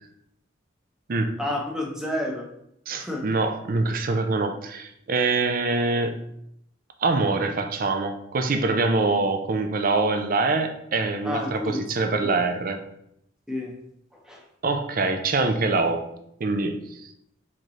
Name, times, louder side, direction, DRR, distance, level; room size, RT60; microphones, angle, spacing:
voice 1, 1.4-2.5 3.0-3.2 11.2-11.8 12.2-12.4 13.5-13.7 14.3-14.4, left 1 dB, 5° right, -1 dB, 0.8 m, -30 dB
voice 2, 2.9-6.2 7.0-12.8 14.6-16.1 16.4-17.1, right 3 dB, 50° right, 6 dB, 0.5 m, -24 dB
4.4 x 3.8 x 3.1 m, 0.75 s
head